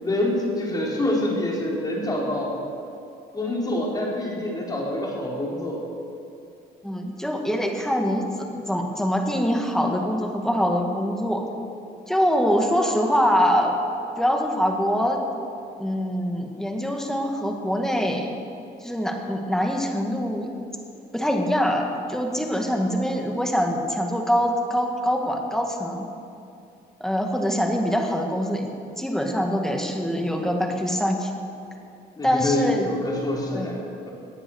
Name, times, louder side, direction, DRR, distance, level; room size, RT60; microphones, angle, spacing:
voice 1, 0.0-2.5 3.3-5.8 32.2-33.8, left 1 dB, 25° left, -3 dB, 4.2 m, -26 dB
voice 2, 6.8-11.4 12.1-13.7 14.2-15.2 15.8-18.3 18.8-20.5 21.1-26.1 27.0-28.7 29.0-31.3 32.2-32.9 33.5-33.7, equal, 5° left, 2 dB, 2.1 m, -24 dB
18.5 x 9.8 x 6.5 m, 2.7 s
cardioid pair, 110°, 17 cm